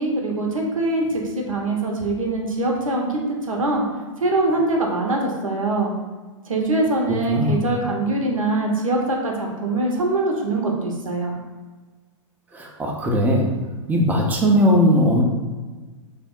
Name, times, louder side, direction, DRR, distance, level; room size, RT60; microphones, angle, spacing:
voice 1, 0.0-3.1 3.5-3.8 4.2-5.9 6.5-11.3, right 2 dB, 85° right, 0 dB, 0.7 m, -23 dB
voice 2, 7.3-7.6 12.5-13.5 13.9-15.2, equal, 10° right, 0 dB, 0.5 m, -18 dB
3.4 x 2.1 x 3.6 m, 1.3 s
hypercardioid pair, 110°, 17 cm